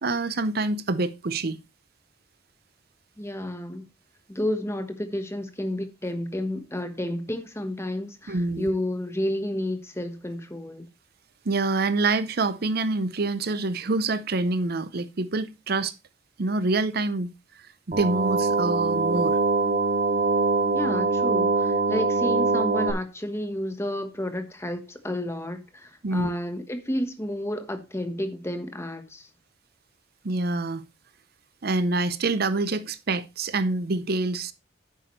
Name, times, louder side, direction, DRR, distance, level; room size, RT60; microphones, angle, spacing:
voice 1, 0.0-1.6 8.3-8.7 11.5-15.9 16.4-17.3 17.9-19.4 26.0-26.3 30.2-30.8 31.6-34.5, right 3 dB, 55° right, 0.7 m, -26 dB
voice 2, 3.2-3.9 4.3-10.9 20.7-29.3, left 1 dB, 15° left, 1.3 m, -31 dB
sound 1, 17.9-22.9, right 3 dB, 40° right, 2.7 m, -23 dB
10.0 x 8.4 x 3.1 m
head